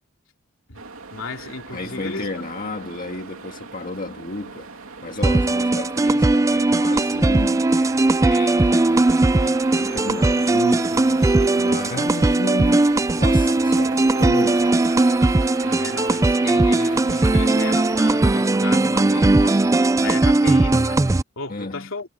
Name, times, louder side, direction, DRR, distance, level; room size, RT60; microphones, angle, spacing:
voice 1, 0.7-2.4 15.6-19.8 20.0-22.1, left 4 dB, 70° left, 3.5 m, -34 dB
sound 1, 0.7-18.8, right 3 dB, 85° right, 2.7 m, -38 dB
voice 2, 1.7-7.9 8.2-12.9 13.2-14.7 21.5-21.9, left 2 dB, 45° left, 1.7 m, -32 dB
sound 2, 5.2-21.2, right 2 dB, 15° right, 0.3 m, -18 dB
head